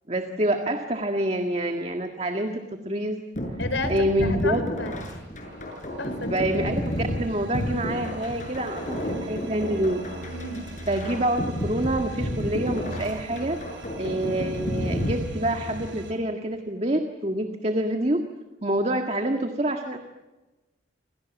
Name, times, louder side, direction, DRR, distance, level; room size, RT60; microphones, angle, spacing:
voice 1, 0.1-3.2 3.9-4.7 6.3-10.0 10.9-13.6 14.0-18.2 18.6-20.0, right 1 dB, 35° right, 5 dB, 1.8 m, -27 dB
sound 1, 3.4-15.9, equal, 40° left, 7.3 m, -31 dB
voice 2, 3.6-3.9 4.2-5.0 6.0-6.3 6.5-6.7 10.3-10.7, left 2 dB, 90° left, 11 dB, 4.3 m, -32 dB
sound 2, 5.2-16.1, right 1 dB, 85° right, 7.2 m, -42 dB
30.0 x 26.5 x 7.3 m, 1.1 s
head